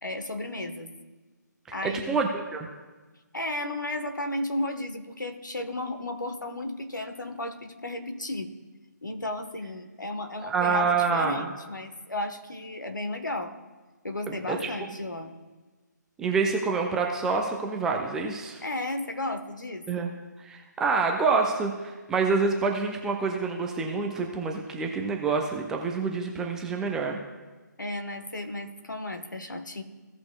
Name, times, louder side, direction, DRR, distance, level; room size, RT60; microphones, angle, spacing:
voice 1, 0.0-0.9 1.7-2.2 3.3-8.5 9.0-13.5 14.0-15.3 18.6-20.1 27.8-29.8, left 2 dB, 75° left, 6 dB, 1.2 m, -34 dB
voice 2, 1.8-2.7 10.4-11.5 14.3-14.7 16.2-18.6 19.9-20.1 20.4-27.2, right 4 dB, 5° right, 2 dB, 0.4 m, -27 dB
16.5 x 6.0 x 2.3 m, 1.3 s
figure-of-eight pair, 145°, 10 cm